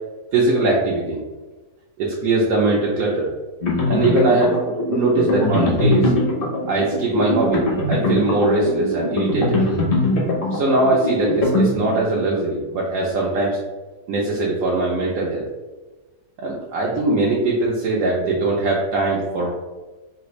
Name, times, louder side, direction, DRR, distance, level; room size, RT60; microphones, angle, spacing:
voice 1, 0.3-1.2 2.0-3.3 3.9-4.6 4.9-6.1 6.7-9.7 10.5-13.6 14.1-15.5 16.4-19.5, right 2 dB, 70° right, -3 dB, 1.0 m, -21 dB
sound 1, 3.6-12.2, left 1 dB, 50° left, 0.7 m, -22 dB
3.3 x 2.4 x 3.0 m, 1.2 s
omnidirectional pair, 1.7 m